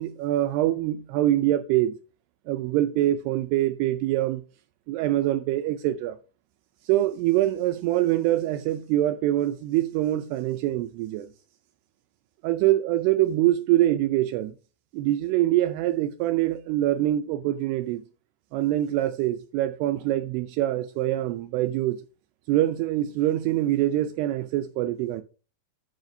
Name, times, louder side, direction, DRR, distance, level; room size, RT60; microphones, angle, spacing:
voice 1, 0.0-1.9 2.5-4.4 4.9-6.2 6.9-11.3 12.4-14.5 14.9-18.0 18.5-22.0 22.5-25.2, right 14 dB, 85° right, 2.4 m, -24 dB
14.0 x 5.8 x 2.6 m
omnidirectional pair, 5.1 m